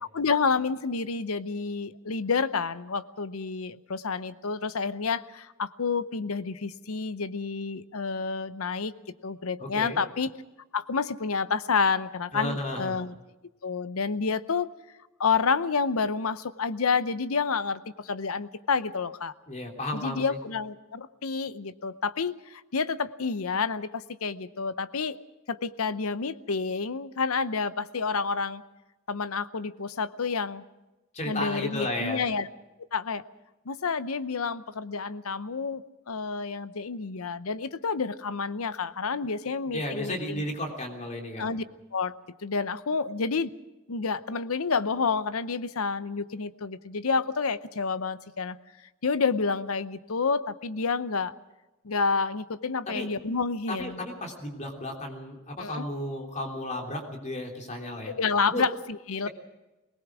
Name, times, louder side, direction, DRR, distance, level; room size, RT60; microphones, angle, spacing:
voice 1, 0.0-8.9 9.2-10.3 10.7-13.1 13.6-14.7 15.2-19.3 19.9-25.2 25.5-28.6 29.1-30.6 31.2-32.5 32.9-33.2 33.7-40.4 41.4-41.6 41.9-42.1 42.4-43.5 43.9-48.6 49.0-51.3 51.8-54.0 55.6-55.8 58.1-59.3, left 5 dB, 90° left, 15 dB, 0.8 m, -29 dB
voice 2, 9.6-10.0 12.3-12.9 19.5-20.4 31.1-32.2 39.7-41.5 52.9-53.1 53.7-58.1 58.5-58.6 59.2-59.3, left 1 dB, 35° left, 2 dB, 3.3 m, -33 dB
21.5 x 19.5 x 6.2 m, 1.1 s
head